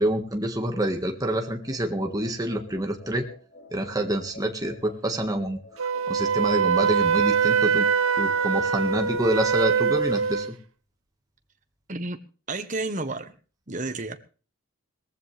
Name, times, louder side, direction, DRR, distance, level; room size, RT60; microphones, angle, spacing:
voice 1, 0.0-3.3 3.7-7.9 8.2-10.5, right 1 dB, 15° right, 3 dB, 1.7 m, -27 dB
sound 1, 1.4-9.7, left 1 dB, 45° left, 5.8 m, -48 dB
Wind instrument woodwind instrument, 5.8-10.5, right 6 dB, 65° right, 0.8 m, -23 dB
voice 2, 11.9-12.2 12.5-13.4 13.7-14.2, right 2 dB, 35° right, 8 dB, 1.3 m, -31 dB
19.0 x 15.0 x 3.4 m, 0.38 s
head